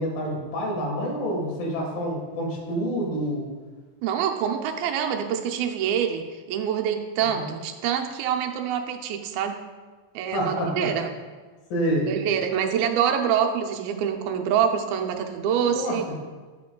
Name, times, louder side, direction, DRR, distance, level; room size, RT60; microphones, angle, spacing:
voice 1, 0.0-3.5 7.3-7.5 10.3-10.9 11.7-12.1 15.6-16.0, equal, 75° left, -1 dB, 3.2 m, -27 dB
voice 2, 4.0-9.6 10.1-11.1 12.0-16.1, right 8 dB, 85° right, 4 dB, 2.5 m, -26 dB
10.0 x 8.4 x 2.2 m, 1.4 s
omnidirectional pair, 4.1 m